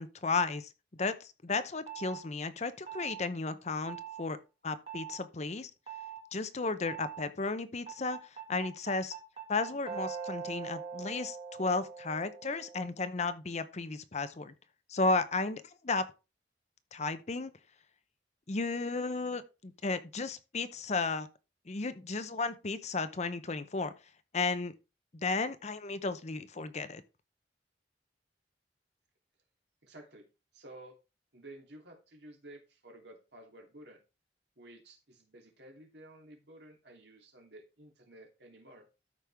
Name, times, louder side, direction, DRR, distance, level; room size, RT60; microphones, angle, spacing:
voice 1, 0.0-4.4 4.6-5.7 6.3-9.1 9.5-14.5 14.9-16.0 16.9-17.5 18.5-21.3 21.7-23.9 24.3-24.7 25.1-27.0, left 3 dB, 40° left, 0.7 m, -34 dB
sound 1, 1.9-2.2 2.9-3.2 3.9-4.2 4.9-5.2 5.9-6.2 6.9-7.2 7.9-12.9, right 7 dB, 30° right, 1.9 m, -42 dB
voice 2, 29.8-30.3 30.5-31.0 31.3-34.0 34.6-38.9, right 1 dB, 70° right, 2.9 m, -53 dB
13.0 x 5.4 x 3.5 m
head